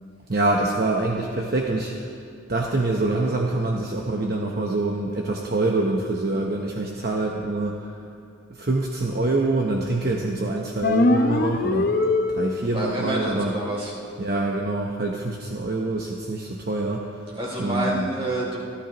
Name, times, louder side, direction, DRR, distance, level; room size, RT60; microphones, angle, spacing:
voice 1, 0.3-2.1 2.5-7.8 8.6-11.9 12.4-13.6 14.2-17.0 17.6-18.1, right 2 dB, 50° right, -1 dB, 1.0 m, -25 dB
sound 1, 10.8-12.8, left 2 dB, 50° left, 0.7 m, -21 dB
voice 2, 12.7-13.9 17.3-18.6, right 1 dB, 30° right, -4 dB, 3.3 m, -28 dB
27.5 x 13.0 x 3.1 m, 2.4 s
head